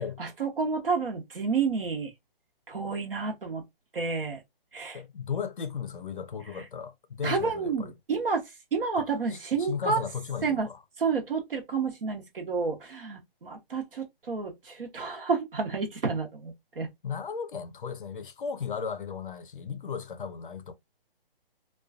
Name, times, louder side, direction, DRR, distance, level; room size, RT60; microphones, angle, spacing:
voice 1, 0.0-2.1 2.7-3.6 3.9-4.4 4.7-5.0 6.5-6.7 7.2-8.4 8.7-10.0 10.4-10.7 11.0-16.9, right 5 dB, 70° right, 0.8 m, -30 dB
voice 2, 4.9-7.9 9.0-10.8 17.0-20.7, left 6 dB, 60° left, 0.5 m, -36 dB
2.4 x 2.2 x 2.3 m
hypercardioid pair, 180°, 29 cm